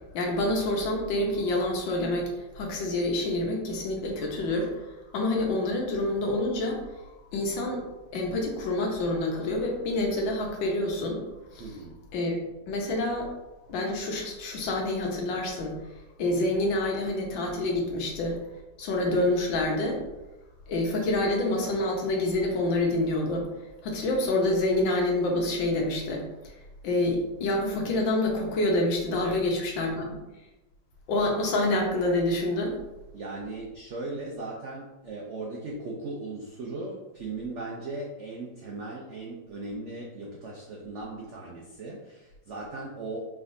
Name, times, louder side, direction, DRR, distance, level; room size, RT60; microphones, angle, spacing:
voice 1, 0.1-4.9 5.1-6.8 7.3-7.8 8.1-11.2 11.5-11.6 12.1-12.4 12.7-13.3 13.7-15.7 16.2-18.4 18.8-20.0 20.7-23.5 23.8-26.2 26.8-30.2 31.1-32.8, left 1 dB, 80° left, 1 dB, 1.6 m, -27 dB
voice 2, 11.6-12.0 29.2-29.4 33.1-43.3, right 2 dB, 85° right, -2 dB, 0.6 m, -38 dB
4.8 x 3.4 x 2.6 m, 1.0 s
omnidirectional pair, 2.0 m